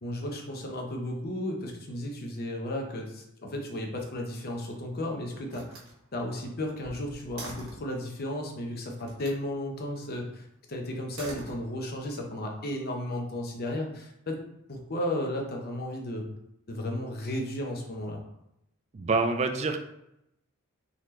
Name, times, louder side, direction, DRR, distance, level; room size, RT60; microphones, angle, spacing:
voice 1, 0.0-5.8 6.1-14.4 14.7-16.3 16.7-18.2, left 1 dB, 50° left, 1 dB, 0.7 m, -34 dB
Slam, 4.4-5.0 5.5-8.0 9.0-9.4 10.9-12.1, right 2 dB, 90° right, 1.3 m, -46 dB
voice 2, 18.9-19.8, right 3 dB, 30° right, 6 dB, 0.4 m, -26 dB
4.0 x 2.9 x 3.2 m, 0.81 s
head